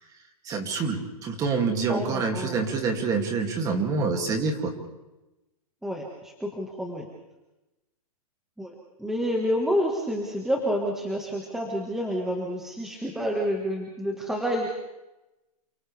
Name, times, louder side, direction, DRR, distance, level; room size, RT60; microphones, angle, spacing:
voice 1, 0.4-4.7, right 4 dB, 20° right, 3 dB, 2.8 m, -26 dB
voice 2, 1.9-2.6 5.8-7.1 8.6-14.7, equal, ahead, -1 dB, 1.8 m, -29 dB
29.5 x 27.0 x 3.6 m, 1.0 s
hypercardioid pair, 160°, 20 cm